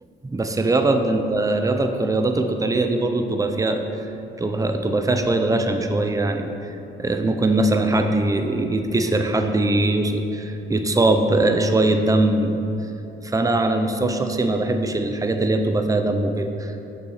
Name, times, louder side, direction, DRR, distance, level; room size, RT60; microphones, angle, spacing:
voice 1, 0.2-3.8 4.4-6.7 7.0-12.6 13.2-16.7, right 2 dB, 15° right, 6 dB, 0.7 m, -21 dB
6.8 x 6.0 x 6.5 m, 2.9 s
cardioid pair, 90°, 20 cm